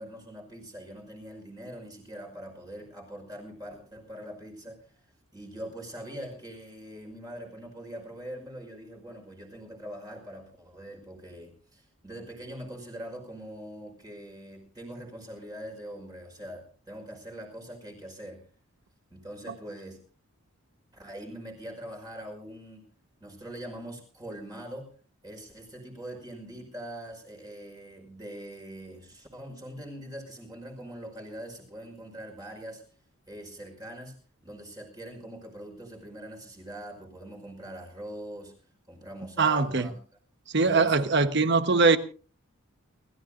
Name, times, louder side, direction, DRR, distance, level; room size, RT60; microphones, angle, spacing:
voice 1, 0.0-4.9 5.3-18.4 19.1-20.0 20.9-22.9 23.2-24.9 25.2-32.8 33.3-34.2 34.4-38.5 38.9-39.9 40.6-41.5, right 1 dB, 15° right, 5.3 m, -43 dB
voice 2, 39.4-39.9 40.5-42.0, right 4 dB, 50° right, 1.1 m, -22 dB
29.5 x 14.0 x 2.6 m
head